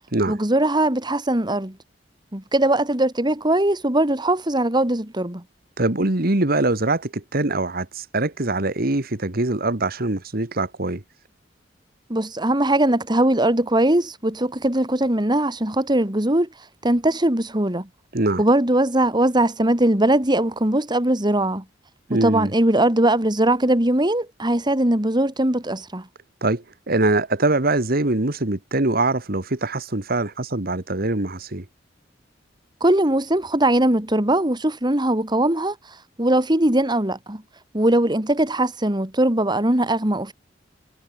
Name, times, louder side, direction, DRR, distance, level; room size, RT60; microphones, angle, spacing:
voice 1, 0.3-1.8 2.3-5.4 12.1-16.5 16.8-17.9 18.4-21.6 22.1-26.1 32.8-35.8 36.2-37.4 37.7-40.3, right 1 dB, 25° right, 2.8 m, -20 dB
voice 2, 5.8-11.0 18.1-18.4 22.1-22.5 26.4-31.7, right 2 dB, 55° right, 1.9 m, -23 dB
head